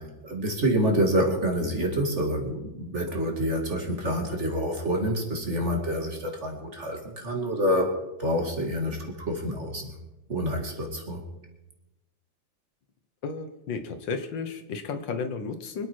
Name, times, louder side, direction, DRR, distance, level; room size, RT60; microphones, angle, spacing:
voice 1, 0.0-10.0 10.3-11.2, equal, 35° right, 2 dB, 2.5 m, -27 dB
voice 2, 13.2-15.9, left 5 dB, 70° left, 7 dB, 1.7 m, -33 dB
24.5 x 9.0 x 4.6 m, 0.95 s
omnidirectional pair, 2.1 m